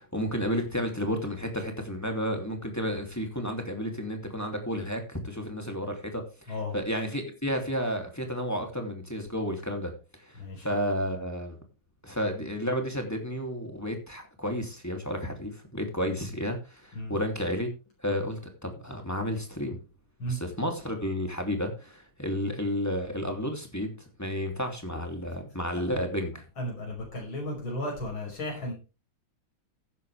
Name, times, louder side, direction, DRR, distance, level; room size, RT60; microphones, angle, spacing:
voice 1, 0.0-9.9 10.2-11.6 12.0-17.7 18.0-19.8 20.3-23.9 24.2-26.4, equal, 10° left, 3 dB, 2.8 m, -32 dB
voice 2, 10.4-10.7 16.9-17.2 20.2-20.4 26.6-28.7, left 1 dB, 75° left, -1 dB, 6.5 m, -34 dB
15.0 x 11.0 x 3.5 m, 0.31 s
omnidirectional pair, 2.2 m